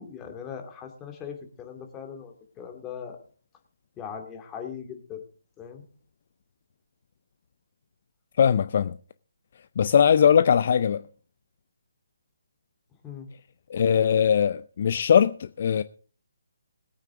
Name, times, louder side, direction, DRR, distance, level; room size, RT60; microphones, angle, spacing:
voice 1, 0.0-3.2 4.0-5.2 5.6-5.8 13.0-13.3, left 7 dB, 15° left, 2.4 m, -39 dB
voice 2, 8.4-9.0 9.8-11.0 13.7-15.8, left 8 dB, 45° left, 0.5 m, -20 dB
20.5 x 9.0 x 3.8 m
figure-of-eight pair, 145°, 0 cm